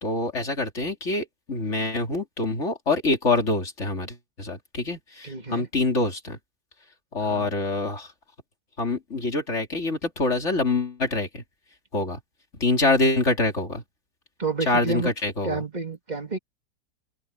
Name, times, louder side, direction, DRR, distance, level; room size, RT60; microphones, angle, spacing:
voice 1, 0.0-6.4 7.1-8.1 8.8-11.4 11.9-12.2 12.6-13.8 14.7-15.6, left 2 dB, 45° left, 3.5 m, -25 dB
voice 2, 5.2-5.7 7.2-7.5 14.4-15.1 15.4-16.4, right 4 dB, 25° right, 2.4 m, -30 dB
open air
omnidirectional pair, 1.8 m